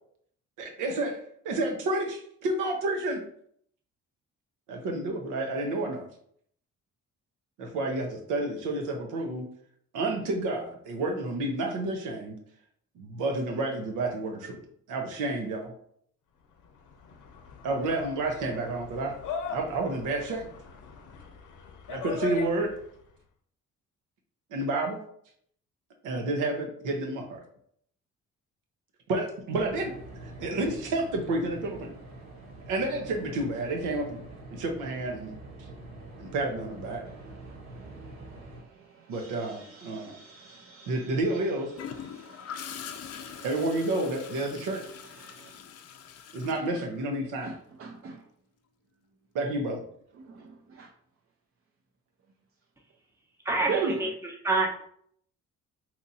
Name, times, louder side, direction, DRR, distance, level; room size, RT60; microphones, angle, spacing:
voice 1, 0.6-3.2 4.7-6.1 7.6-9.4 9.9-12.3 13.0-14.6 14.9-15.7 17.6-19.1 19.5-20.5 21.9-22.7 24.5-25.0 26.0-27.4 29.1-29.9 30.4-31.9 32.7-34.2 34.5-35.3 36.2-37.0 39.1-40.2 40.9-41.7 43.4-44.8 46.3-47.5 49.3-49.8, right 2 dB, 90° right, 2 dB, 0.7 m, -30 dB
sound 1, 16.6-23.0, left 5 dB, 90° left, 0.7 m, -40 dB
sound 2, 29.5-38.6, right 2 dB, 65° right, 1.1 m, -45 dB
voice 2, 37.1-41.4 42.0-43.7 44.5-45.6 46.4-46.5 47.4-48.2 50.2-50.9 53.7-54.0, right 6 dB, 50° right, 2 dB, 0.5 m, -40 dB
Gurgling / Toilet flush, 41.8-47.5 49.5-49.7, left 8 dB, 55° left, 0.4 m, -43 dB
voice 3, 53.4-54.7, right 2 dB, 10° right, 0 dB, 0.8 m, -27 dB
2.9 x 2.6 x 4.0 m, 0.66 s
cardioid pair, 90°, 30 cm